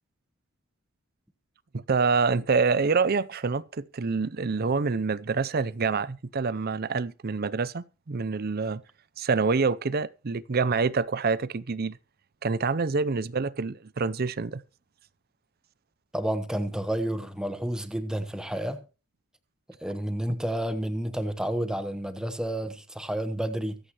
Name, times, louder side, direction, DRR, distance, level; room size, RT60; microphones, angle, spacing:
voice 1, 1.7-8.8 9.2-12.0 12.4-14.6, right 4 dB, 45° right, 0.5 m, -26 dB
voice 2, 16.1-18.8 19.8-23.8, right 1 dB, 5° right, 1.1 m, -30 dB
24.0 x 8.1 x 3.0 m
head